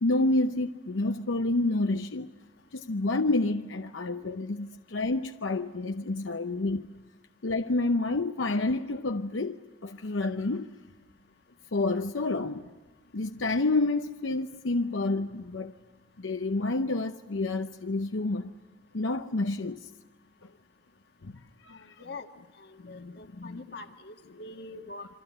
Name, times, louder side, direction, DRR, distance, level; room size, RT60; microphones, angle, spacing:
voice 1, 0.0-2.3 2.7-6.9 7.4-10.7 11.7-12.7 13.1-15.7 16.2-18.5 18.9-19.9 21.2-21.7 22.8-23.6, left 2 dB, 85° left, 0.7 m, -29 dB
voice 2, 21.7-22.3 22.6-25.1, left 3 dB, 55° left, 1.7 m, -44 dB
27.0 x 24.5 x 8.0 m
head